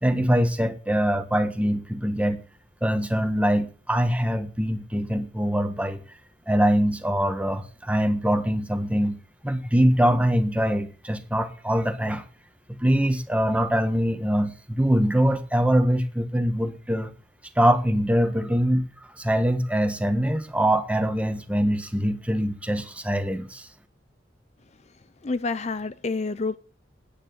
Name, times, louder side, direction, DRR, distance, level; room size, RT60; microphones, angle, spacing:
voice 1, 0.0-2.4 2.8-6.0 6.5-9.2 9.4-12.2 12.8-17.1 17.6-18.8 19.2-23.7, equal, 5° right, 1.3 m, -23 dB
voice 2, 25.2-26.6, left 3 dB, 35° left, 0.5 m, -28 dB
10.0 x 9.6 x 8.0 m
head